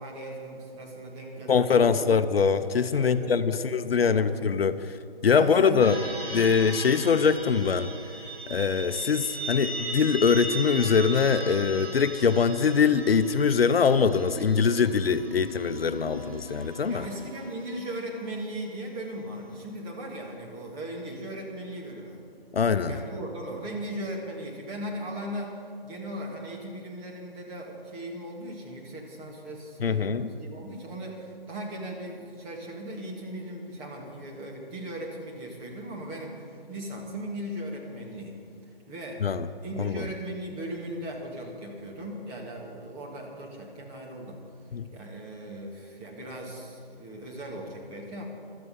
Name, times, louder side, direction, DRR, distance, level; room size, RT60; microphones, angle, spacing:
voice 1, 0.0-2.1 2.9-4.7 5.3-5.9 6.3-6.6 16.9-22.2 22.9-38.4 38.9-39.3 39.6-44.4 44.9-48.3, right 1 dB, 15° right, -1 dB, 1.9 m, -38 dB
voice 2, 1.5-4.8 5.2-6.0 6.3-7.9 8.5-17.1 22.5-23.0 29.8-30.3 39.2-39.5 39.8-40.1 44.7-44.9, left 6 dB, 70° left, 12 dB, 0.7 m, -23 dB
sound 1, 5.8-18.3, right 1 dB, 85° right, 4.2 m, -38 dB
16.5 x 12.5 x 5.5 m, 2.3 s
figure-of-eight pair, 155°, 30 cm